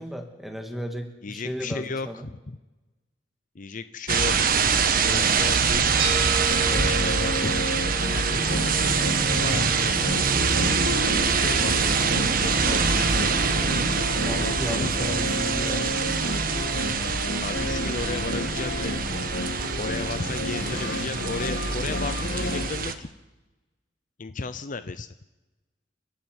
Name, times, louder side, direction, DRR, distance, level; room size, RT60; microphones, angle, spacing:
voice 1, 0.0-2.3 14.2-15.9, equal, ahead, 4 dB, 2.5 m, -34 dB
voice 2, 1.2-2.6 3.5-5.9 6.7-7.6 8.1-9.0 9.4-10.0 11.4-13.3 14.3-14.9 17.1-19.3 19.7-23.1 24.2-25.1, left 4 dB, 45° left, 12 dB, 0.7 m, -35 dB
sound 1, 4.1-22.9, right 5 dB, 50° right, 1.4 m, -24 dB
sound 2, 6.0-14.6, right 5 dB, 35° right, 4.4 m, -38 dB
sound 3, 6.5-22.7, left 2 dB, 85° left, 1.7 m, -32 dB
30.0 x 11.5 x 8.3 m, 1.1 s
head